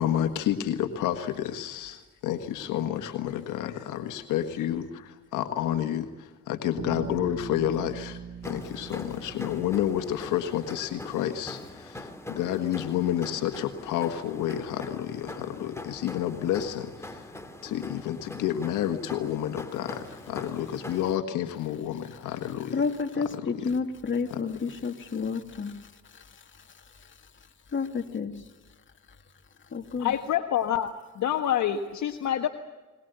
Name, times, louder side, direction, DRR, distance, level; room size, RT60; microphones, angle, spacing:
voice 1, 0.0-17.3 17.6-22.8 23.1-23.7 24.3-24.4, left 11 dB, 90° left, 7 dB, 1.7 m, -30 dB
Bass guitar, 6.8-10.8, right 5 dB, 50° right, 4.1 m, -41 dB
sound 1, 8.4-21.1, left 2 dB, 10° left, 2.9 m, -43 dB
voice 2, 22.7-25.7 27.7-28.3 29.7-30.1, left 5 dB, 40° left, 4 dB, 2.6 m, -30 dB
voice 3, 30.0-32.5, left 10 dB, 70° left, 5 dB, 1.5 m, -27 dB
22.0 x 21.5 x 8.1 m, 1.2 s
cardioid pair, 90°, 30 cm